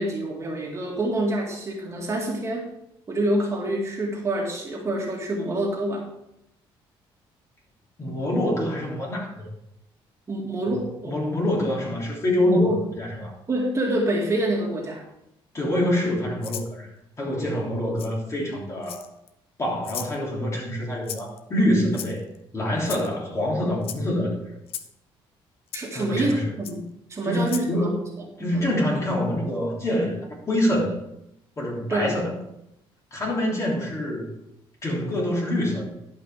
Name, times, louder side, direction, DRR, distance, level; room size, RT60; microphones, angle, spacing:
voice 1, 0.0-2.7 3.1-6.1 10.3-11.1 12.4-12.8 13.5-15.0 25.7-27.9 28.4-28.7 31.9-32.2, right 1 dB, 30° right, -1 dB, 2.1 m, -26 dB
voice 2, 8.0-9.5 10.7-10.8 11.0-13.3 15.5-16.9 17.2-19.0 19.6-22.3 22.5-24.6 25.9-26.5 27.2-28.0 28.4-31.0 31.6-32.4 33.1-34.3 34.8-35.9, left 1 dB, 30° left, -2 dB, 3.3 m, -25 dB
Rattle (instrument), 16.4-16.7 18.0-18.1 18.8-19.3 19.8-20.2 21.1-21.4 21.9-22.4 22.8-23.1 23.8-24.0 24.7-24.9 25.7-25.8 26.6-26.8 27.4-27.7, left 9 dB, 75° left, 0.8 m, -36 dB
11.5 x 5.7 x 4.9 m, 0.81 s
cardioid pair, 115°, 10 cm